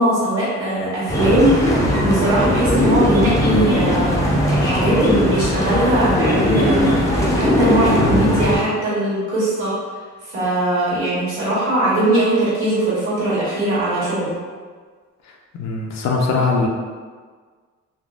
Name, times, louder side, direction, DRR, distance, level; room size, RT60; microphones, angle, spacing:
voice 1, 0.0-9.7 10.2-14.3, right 1 dB, 45° right, -9 dB, 1.3 m, -20 dB
sound 1, 1.1-8.6, left 1 dB, 10° left, 0.5 m, -19 dB
voice 2, 8.0-8.4 15.5-16.7, left 3 dB, 65° left, 0 dB, 0.5 m, -21 dB
3.4 x 2.1 x 2.4 m, 1.6 s
cardioid pair, 120°, 29 cm